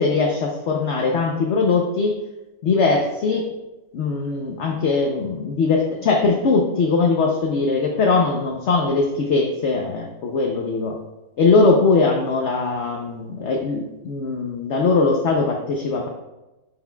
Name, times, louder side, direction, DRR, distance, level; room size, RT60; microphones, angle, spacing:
voice 1, 0.0-2.2 2.6-3.5 3.9-11.0 11.4-16.1, left 4 dB, 55° left, 1 dB, 0.9 m, -20 dB
10.5 x 5.6 x 2.3 m, 1.0 s
omnidirectional pair, 1.8 m